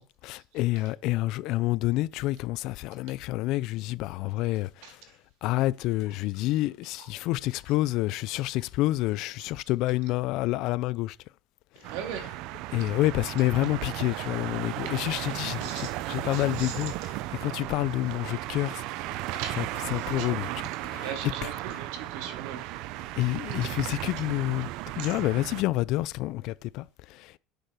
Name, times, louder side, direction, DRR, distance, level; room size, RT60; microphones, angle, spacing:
voice 1, 0.0-5.0 5.4-11.2 11.8-11.9 12.7-18.8 19.6-19.7 19.9-21.1 23.1-27.4, left 17 dB, 60° left, 0.4 m, -28 dB
sound 1, 11.8-25.6, right 16 dB, 65° right, 0.5 m, -35 dB
voice 2, 11.9-12.3 14.8-14.9 15.6-15.9 16.3-16.8 19.3-20.3 20.5-20.6 21.0-22.6 25.0-25.1, right 7 dB, 80° right, 2.5 m, -39 dB
8.1 x 6.7 x 5.7 m
cardioid pair, 150°, 0 cm